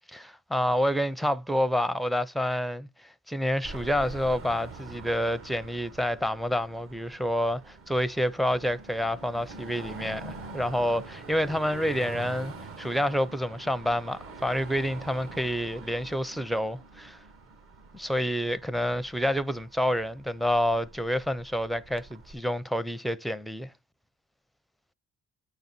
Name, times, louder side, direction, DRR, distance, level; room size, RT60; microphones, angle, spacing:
voice 1, 0.1-17.2 17.9-23.7, equal, ahead, 0.5 m, -28 dB
Car passing by / Traffic noise roadway noise / Engine, 3.6-22.3, right 3 dB, 45° right, 1.3 m, -45 dB
9.0 x 4.0 x 4.4 m
cardioid pair, 90°, 30 cm